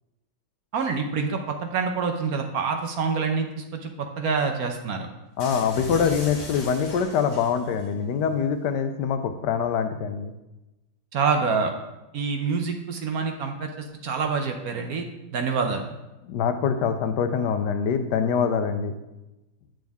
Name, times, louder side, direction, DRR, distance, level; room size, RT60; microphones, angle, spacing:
voice 1, 0.7-5.1 11.1-11.7 12.1-15.1 15.3-15.9, right 5 dB, 65° right, 4 dB, 1.1 m, -26 dB
voice 2, 5.4-10.3 16.3-18.9, left 6 dB, 75° left, 8 dB, 1.2 m, -24 dB
sound 1, 5.4-7.9, left 2 dB, 45° left, 1.7 m, -37 dB
8.9 x 6.3 x 3.5 m, 1.0 s
omnidirectional pair, 1.9 m